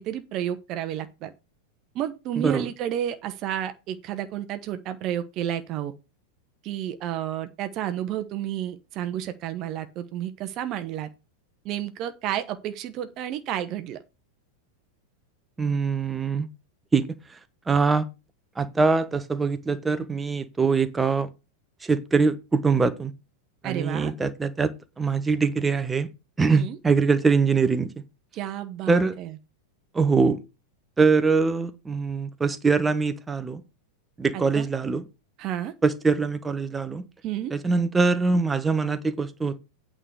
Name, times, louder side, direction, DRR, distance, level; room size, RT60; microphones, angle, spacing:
voice 1, 0.0-1.3 1.9-5.9 6.6-11.1 11.6-14.0 23.6-24.1 26.5-26.8 28.3-29.3 34.3-34.7 35.4-35.7 37.2-37.5, right 11 dB, 40° right, 1.0 m, -31 dB
voice 2, 2.4-2.7 15.6-16.5 16.9-17.0 17.7-18.1 18.6-21.3 21.8-23.1 23.6-26.1 26.4-28.0 28.9-29.2 29.9-30.4 31.0-33.6 34.2-35.0 35.8-37.1 37.5-39.6, right 4 dB, 10° right, 1.1 m, -23 dB
9.1 x 5.0 x 6.5 m
figure-of-eight pair, 90°, 0 cm